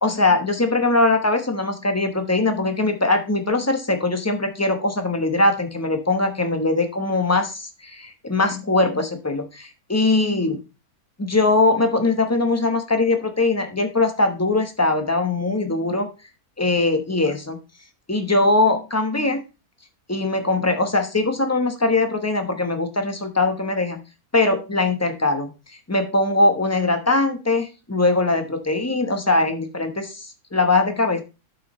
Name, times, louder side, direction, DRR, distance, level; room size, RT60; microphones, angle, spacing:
voice 1, 0.0-10.6 11.2-16.1 16.6-17.6 18.1-19.4 20.1-24.0 24.3-25.5 25.9-31.2, left 2 dB, 10° left, 6 dB, 0.9 m, -21 dB
11.5 x 5.7 x 3.1 m, 0.29 s
omnidirectional pair, 1.6 m